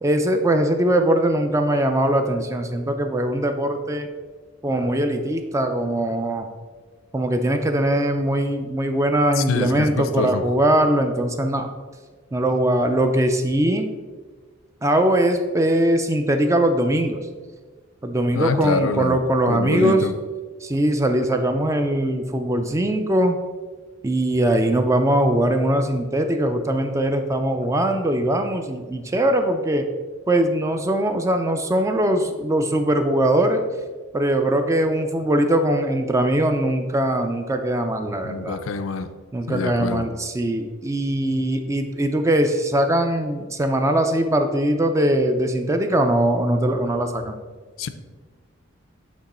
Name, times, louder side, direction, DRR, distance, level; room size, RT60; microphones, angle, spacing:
voice 1, 0.0-4.1 4.6-6.5 7.1-11.7 12.3-13.9 14.8-17.2 18.0-20.0 20.6-23.4 24.0-29.9 30.3-33.6 34.1-38.6 39.3-47.4, right 1 dB, 15° right, 6 dB, 0.4 m, -21 dB
voice 2, 9.3-10.4 18.3-19.2 19.5-20.1 38.2-39.1 39.5-40.1 47.8-47.9, left 4 dB, 80° left, 10 dB, 0.4 m, -25 dB
8.2 x 3.0 x 4.2 m, 1.4 s
head